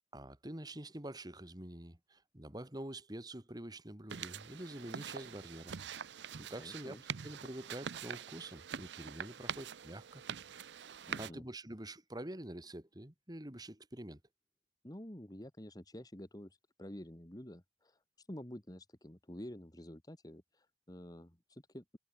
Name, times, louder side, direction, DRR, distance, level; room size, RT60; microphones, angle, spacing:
voice 1, 0.1-5.7 6.4-7.0 7.2-10.2 11.2-14.2, right 1 dB, 25° right, 2.3 m, -46 dB
sound 1, 4.1-11.3, right 7 dB, 90° right, 0.6 m, -45 dB
voice 2, 6.6-7.0 11.1-11.4 14.8-22.0, equal, 20° left, 2.0 m, -49 dB
head